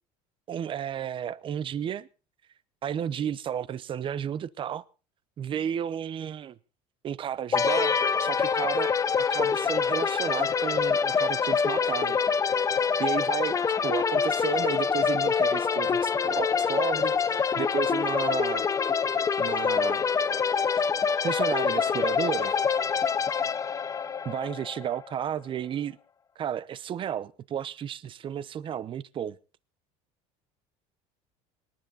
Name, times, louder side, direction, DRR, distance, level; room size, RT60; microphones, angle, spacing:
voice 1, 0.5-2.1 2.8-4.8 5.4-6.6 7.0-12.2 13.0-13.6 13.8-18.7 19.4-20.0 21.2-22.6 24.2-26.0 26.4-29.4, right 9 dB, 35° right, 0.8 m, -32 dB
sound 1, 7.5-25.1, left 6 dB, 20° left, 0.6 m, -25 dB
25.5 x 10.5 x 4.1 m
cardioid pair, 130°, 15 cm